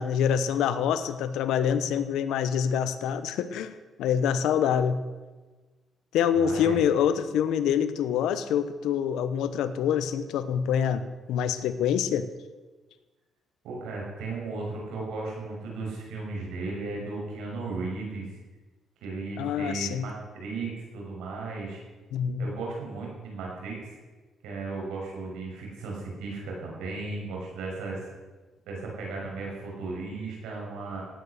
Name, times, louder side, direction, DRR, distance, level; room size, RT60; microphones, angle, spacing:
voice 1, 0.0-5.0 6.1-12.3 19.4-20.0 22.1-22.5, left 8 dB, 85° left, 12 dB, 1.0 m, -26 dB
voice 2, 6.3-6.9 13.6-18.3 19.0-21.8 22.4-23.9 24.4-28.1 28.7-31.0, right 3 dB, 90° right, -2 dB, 6.3 m, -35 dB
17.0 x 9.4 x 6.7 m, 1.3 s
cardioid pair, 90°, 0 cm